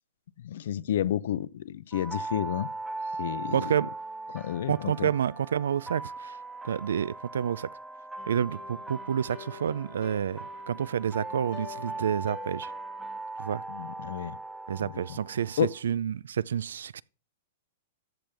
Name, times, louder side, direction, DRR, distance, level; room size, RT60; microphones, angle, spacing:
voice 1, 0.4-2.7 3.2-3.8 4.3-5.1 13.7-14.4 14.8-15.2 15.6-15.7, left 11 dB, 70° left, 0.5 m, -31 dB
sound 1, 1.9-15.8, right 3 dB, 5° right, 0.6 m, -40 dB
voice 2, 3.5-3.9 4.7-6.4 6.6-7.7 8.3-12.7 13.4-13.6 14.7-17.0, right 8 dB, 85° right, 0.4 m, -29 dB
sound 2, 8.2-13.2, left 11 dB, 30° left, 1.4 m, -48 dB
13.5 x 7.2 x 3.4 m
hypercardioid pair, 135°, 0 cm